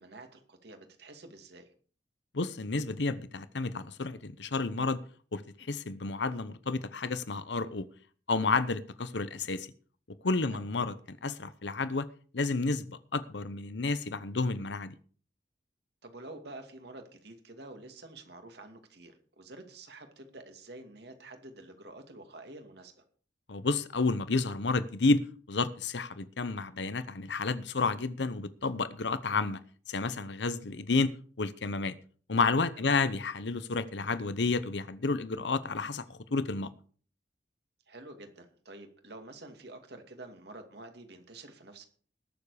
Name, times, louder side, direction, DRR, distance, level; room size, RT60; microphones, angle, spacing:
voice 1, 0.0-1.7 10.5-10.6 16.0-23.0 32.8-33.0 37.9-41.9, right 2 dB, 65° right, 2.4 m, -48 dB
voice 2, 2.3-5.0 5.3-7.9 8.3-9.7 10.2-12.1 12.3-14.9 23.5-29.6 29.9-32.0 32.3-36.7, left 3 dB, 75° left, 0.9 m, -31 dB
20.0 x 7.2 x 5.0 m
head